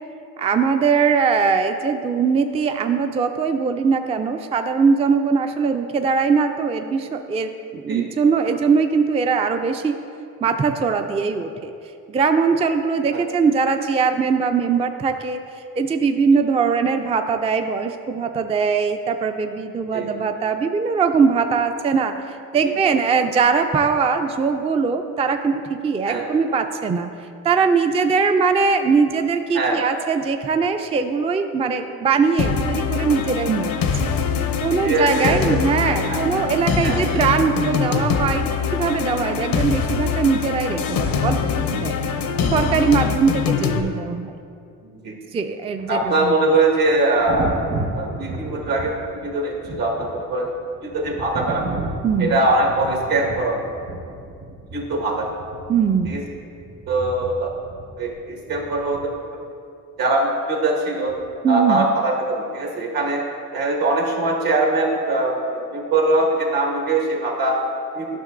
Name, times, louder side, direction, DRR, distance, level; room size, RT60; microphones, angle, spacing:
voice 1, 0.4-10.0 10.4-11.7 12.1-15.4 15.8-27.1 27.4-33.9 34.6-41.4 41.7-42.0 42.4-44.3 45.3-46.4 52.0-52.4 55.7-56.1 61.4-61.8, right 5 dB, 20° right, 7 dB, 0.3 m, -21 dB
sound 1, 32.4-43.8, left 6 dB, 65° left, 0.6 m, -23 dB
voice 2, 34.7-35.4 36.1-36.3 36.8-37.0 44.8-45.2 45.9-47.6 47.9-48.9 49.2-50.5 50.8-51.6 52.2-53.6 54.7-55.3 56.1-56.2 56.9-57.5 58.0-59.0 60.0-61.1 61.5-63.2 63.5-67.6 67.9-68.1, right 2 dB, 70° right, -1 dB, 1.5 m, -22 dB
Thunder, 45.8-59.4 61.1-61.3, right 2 dB, 55° right, 1.2 m, -34 dB
11.0 x 5.9 x 2.5 m, 2.5 s
supercardioid pair, 70°, 37 cm